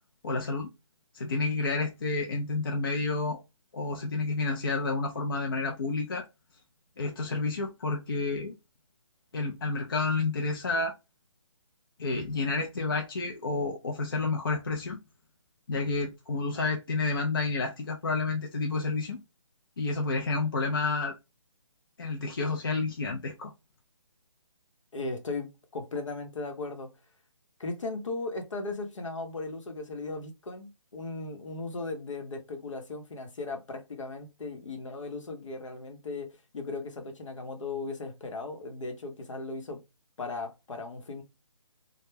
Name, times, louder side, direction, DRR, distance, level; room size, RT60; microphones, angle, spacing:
voice 1, 0.2-0.7 1.1-3.4 3.7-6.3 7.0-8.5 9.3-10.9 12.0-15.0 15.7-19.2 19.8-21.1 22.0-23.5, left 3 dB, 45° left, 0.4 m, -30 dB
voice 2, 24.9-26.9 27.6-39.8 40.2-41.2, left 3 dB, 75° left, 0.8 m, -37 dB
2.1 x 2.1 x 3.1 m
hypercardioid pair, 175°, 16 cm